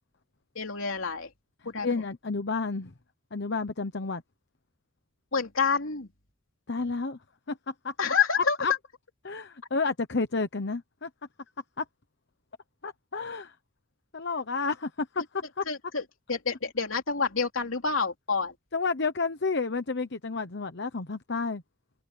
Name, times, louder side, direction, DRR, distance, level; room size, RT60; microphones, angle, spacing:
voice 1, 0.5-1.3 1.6-2.0 5.3-6.1 8.0-8.6 15.7-18.5, left 5 dB, 75° left, 3.3 m, -28 dB
voice 2, 1.8-2.9 3.3-4.2 6.7-7.2 7.5-7.9 8.4-8.7 9.2-11.1 11.8-11.9 12.8-13.5 14.1-15.6 18.7-21.6, left 4 dB, 55° left, 1.0 m, -30 dB
head